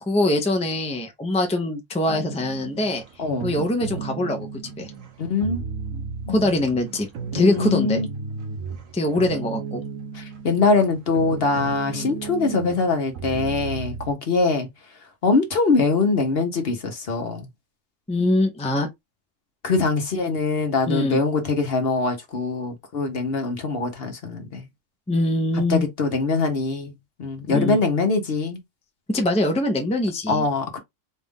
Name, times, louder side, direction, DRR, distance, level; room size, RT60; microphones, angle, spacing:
voice 1, 0.0-3.0 3.4-4.4 4.8-4.9 6.3-7.1 7.3-8.0 8.9-9.8 11.9-12.1 18.1-18.9 20.9-21.2 25.1-25.9 27.5-27.8 29.1-30.5, left 1 dB, 5° left, 0.7 m, -23 dB
sound 1, 2.1-14.1, right 5 dB, 85° right, 1.3 m, -34 dB
voice 2, 3.2-3.5 5.2-5.6 6.3-6.4 7.4-8.1 10.1-14.7 15.2-17.5 19.6-24.7 25.7-26.9 27.2-28.6 30.3-30.8, left 4 dB, 55° left, 1.1 m, -23 dB
4.3 x 2.5 x 3.6 m
omnidirectional pair, 1.3 m